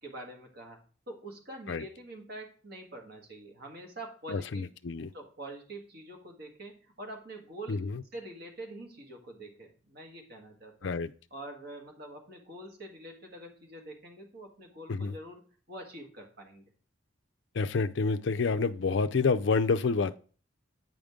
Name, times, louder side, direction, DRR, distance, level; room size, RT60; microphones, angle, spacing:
voice 1, 0.0-4.7 5.1-7.8 8.1-10.9 11.3-16.6, right 1 dB, 50° right, 2 dB, 1.6 m, -45 dB
voice 2, 4.3-5.1 7.7-8.0 10.8-11.1 14.9-15.1 17.5-20.2, left 4 dB, 60° left, 11 dB, 0.4 m, -28 dB
9.2 x 5.1 x 3.6 m, 0.40 s
head